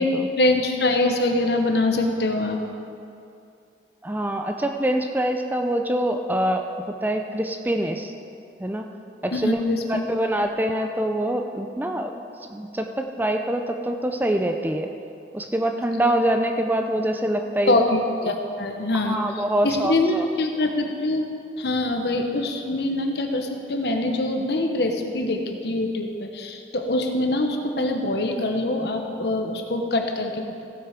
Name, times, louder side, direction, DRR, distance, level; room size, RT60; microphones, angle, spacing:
voice 1, 0.4-2.6 9.3-10.0 17.7-19.2 19.6-21.2 21.6-30.6, left 2 dB, 65° left, 3 dB, 1.1 m, -24 dB
voice 2, 4.0-8.1 8.6-8.9 9.2-9.6 9.9-12.2 12.5-14.9 15.3-17.8 18.2-18.3 18.9-20.3, right 1 dB, 10° right, 5 dB, 0.5 m, -25 dB
15.5 x 7.7 x 5.1 m, 2.6 s
head